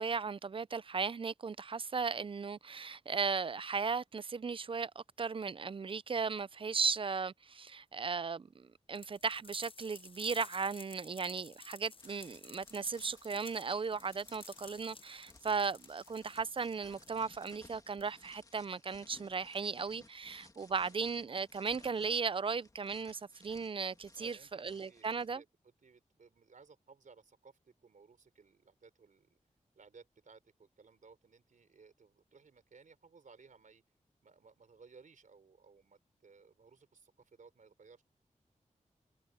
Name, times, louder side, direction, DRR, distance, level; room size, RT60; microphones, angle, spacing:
voice 1, 0.0-25.4, right 5 dB, 40° right, 0.4 m, -36 dB
sound 1, 9.0-18.3, left 4 dB, 45° left, 0.9 m, -54 dB
sound 2, 12.0-25.3, left 2 dB, 25° left, 2.3 m, -62 dB
voice 2, 24.2-29.4 29.7-33.8 34.2-38.0, right 5 dB, 80° right, 3.7 m, -60 dB
wide cardioid pair, 115°, 13 cm